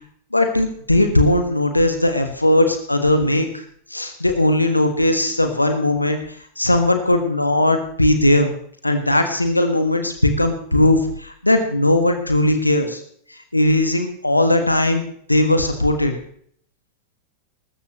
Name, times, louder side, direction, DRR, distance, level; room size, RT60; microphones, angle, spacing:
voice 1, 0.3-3.6 3.9-8.5 8.8-13.0 13.3-15.0 15.3-16.1, left 1 dB, 85° left, 6 dB, 1.5 m, -18 dB
21.5 x 13.0 x 3.2 m, 0.62 s
figure-of-eight pair, 90°, 0 cm